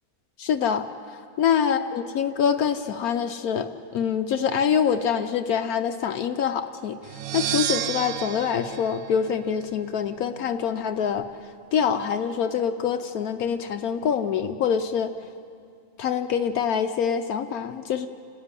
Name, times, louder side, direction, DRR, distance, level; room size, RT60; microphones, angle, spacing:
voice 1, 0.4-0.8 1.4-7.0 7.3-11.3 11.7-15.1 16.0-18.1, left 7 dB, 75° left, 7 dB, 1.2 m, -25 dB
sound 1, 7.0-9.9, right 11 dB, 70° right, 1.1 m, -31 dB
29.0 x 12.5 x 9.7 m, 2.4 s
omnidirectional pair, 1.6 m